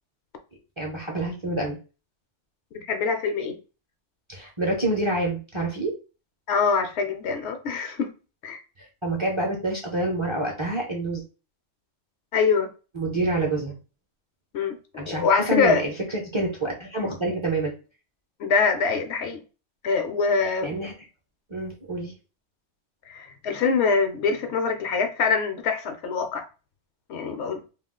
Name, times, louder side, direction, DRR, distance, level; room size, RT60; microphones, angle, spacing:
voice 1, 0.8-1.8 4.3-5.9 8.8-11.2 12.9-13.8 15.0-17.7 20.6-20.9 21.5-22.1, right 2 dB, 35° right, 0.5 m, -27 dB
voice 2, 2.7-3.6 6.5-8.1 8.4-8.6 12.3-12.7 14.5-14.8 15.1-15.8 18.4-19.4 19.8-20.7 23.1-26.4 27.1-27.6, left 5 dB, 70° left, 0.8 m, -24 dB
2.3 x 2.3 x 3.6 m
omnidirectional pair, 1.3 m